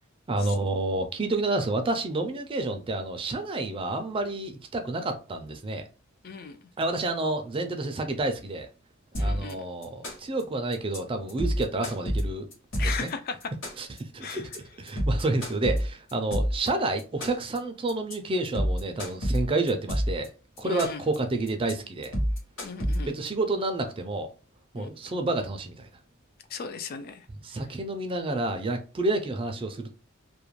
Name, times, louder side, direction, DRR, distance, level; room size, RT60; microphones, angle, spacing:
voice 1, 0.3-5.8 6.8-8.7 9.1-12.5 12.8-13.1 13.8-20.3 20.6-22.1 23.1-24.3 24.7-25.9 27.4-29.9, right 2 dB, 25° right, 0.4 m, -29 dB
voice 2, 6.2-6.6 9.2-9.6 12.8-13.5 14.2-14.5 20.6-21.0 22.6-23.2 24.8-24.9 26.5-27.3, left 5 dB, 45° left, 0.3 m, -36 dB
sound 1, 9.1-9.5 9.8-10.4 10.7-11.0 11.3-13.1 13.4-14.0 14.3-14.6 14.9-16.7 17.0-17.6 17.9-18.1 18.4-20.3 20.6-21.2 21.5-21.7 22.0-23.3, equal, 70° left, 1.0 m, -28 dB
2.4 x 2.1 x 3.0 m
head